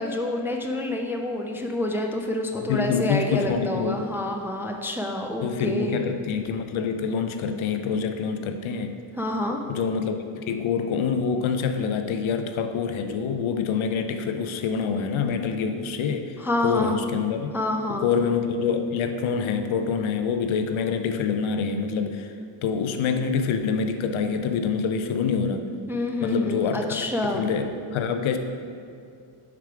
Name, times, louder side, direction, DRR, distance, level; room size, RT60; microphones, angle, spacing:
voice 1, 0.0-6.0 9.2-9.6 16.4-17.0 17.5-18.1 25.9-27.5, left 1 dB, 5° right, 2 dB, 0.3 m, -28 dB
voice 2, 2.5-4.1 5.4-9.0 9.7-16.4 16.6-17.5 17.9-22.3 22.6-25.6 26.2-26.8 27.2-28.4, left 6 dB, 70° left, 7 dB, 0.6 m, -26 dB
4.8 x 4.7 x 4.8 m, 2.4 s
cardioid pair, 75°, 50 cm